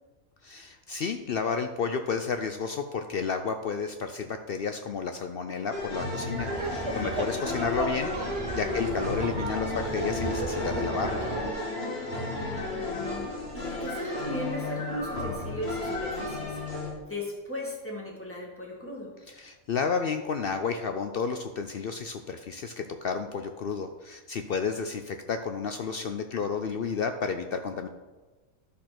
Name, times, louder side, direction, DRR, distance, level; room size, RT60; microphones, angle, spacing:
voice 1, 0.4-8.2 8.6-11.2 19.4-27.9, left 5 dB, 65° left, 7 dB, 0.5 m, -31 dB
sound 1, 5.7-16.9, left 2 dB, 45° left, 2.3 m, -33 dB
Laughter, 6.4-11.5, right 2 dB, 30° right, 0.6 m, -34 dB
voice 2, 12.2-19.1, left 1 dB, 10° left, -3 dB, 1.9 m, -38 dB
11.5 x 4.3 x 5.9 m, 1.3 s
omnidirectional pair, 1.4 m